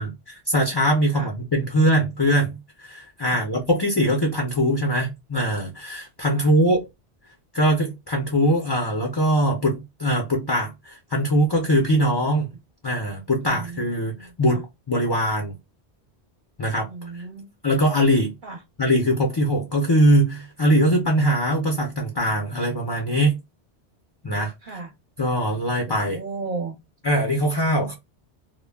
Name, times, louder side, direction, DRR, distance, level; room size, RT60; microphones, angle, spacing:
voice 1, 0.0-2.6 2.8-6.8 7.5-12.5 12.8-14.6 14.9-15.5 16.6-16.9 17.6-18.3 18.8-23.4 24.2-24.5 25.2-26.2 27.0-28.0, equal, 35° left, 0.4 m, -22 dB
voice 2, 13.4-14.6 16.9-17.5 18.4-18.6 24.6-24.9 25.9-26.8, right 4 dB, 55° right, 0.8 m, -35 dB
2.2 x 2.1 x 3.3 m
omnidirectional pair, 1.1 m